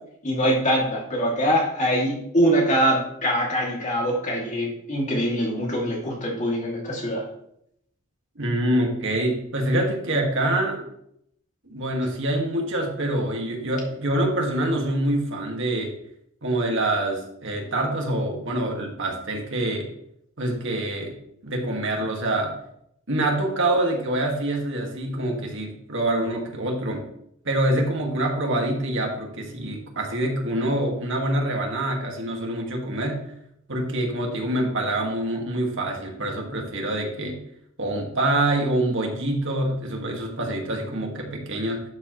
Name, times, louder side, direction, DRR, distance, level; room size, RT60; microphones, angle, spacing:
voice 1, 0.2-7.3, equal, 35° left, -2 dB, 2.7 m, -23 dB
voice 2, 8.4-10.8 11.7-15.9 16.4-19.9 20.4-21.1 21.4-22.5 23.1-27.1 27.4-33.2 33.7-37.4 37.8-41.8, right 1 dB, 60° right, 1 dB, 2.1 m, -25 dB
12.0 x 7.4 x 3.2 m, 0.73 s
head